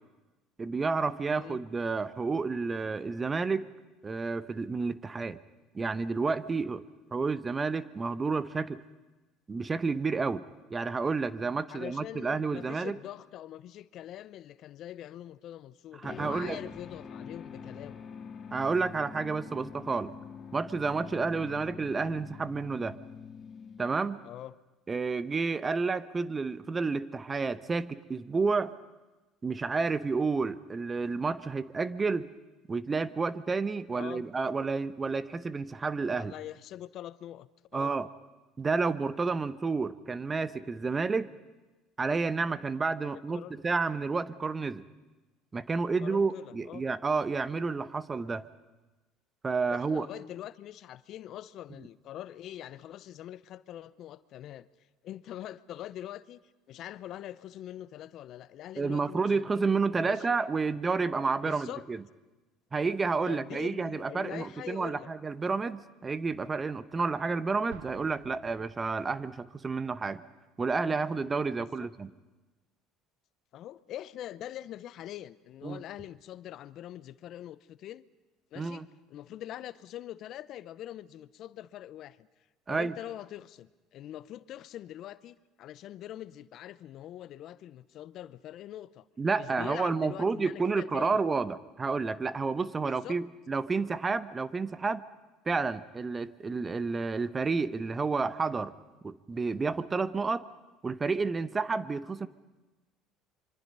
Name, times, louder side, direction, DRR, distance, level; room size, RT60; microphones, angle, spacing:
voice 1, 0.6-3.7 4.0-5.4 5.7-6.8 7.1-8.8 9.5-10.4 10.7-13.0 16.0-16.6 18.5-20.1 20.5-23.0 23.8-24.2 24.9-28.7 29.4-32.3 32.7-36.3 37.7-38.1 38.6-41.3 42.0-44.8 45.5-48.4 49.4-50.1 58.8-62.0 62.7-70.2 70.6-72.1 75.6-75.8 78.6-78.8 82.7-82.9 89.2-95.0 95.5-98.7 99.0-100.4 100.8-102.3, right 4 dB, 25° right, 0.9 m, -30 dB
voice 2, 1.3-1.6 11.7-18.0 21.4-21.6 24.2-24.6 33.9-34.3 36.1-37.9 43.0-43.6 46.0-46.8 49.7-54.7 55.0-56.4 56.7-59.6 60.0-60.4 61.4-61.8 63.3-65.1 71.6-71.9 73.5-78.0 78.5-78.8 79.1-82.3 82.7-89.1 89.4-91.3 92.8-93.2, left 12 dB, 60° left, 0.6 m, -43 dB
sound 1, 16.0-24.3, left 6 dB, 40° left, 3.4 m, -45 dB
Explosion, 67.7-69.4, right 9 dB, 80° right, 1.1 m, -52 dB
26.0 x 24.5 x 5.5 m
hypercardioid pair, 75°, 0 cm